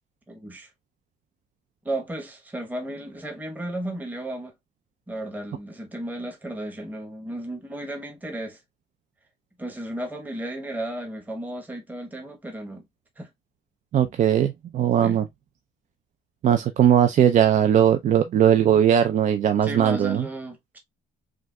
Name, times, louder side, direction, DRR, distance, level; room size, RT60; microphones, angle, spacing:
voice 1, 0.3-0.7 1.8-4.5 5.1-8.6 9.6-12.9 13.2-13.3 15.0-15.2 19.6-20.8, right 1 dB, 10° right, 1.0 m, -34 dB
voice 2, 13.9-15.2 16.4-20.2, right 9 dB, 45° right, 0.4 m, -19 dB
6.2 x 2.4 x 2.2 m
cardioid pair, 110°, 17 cm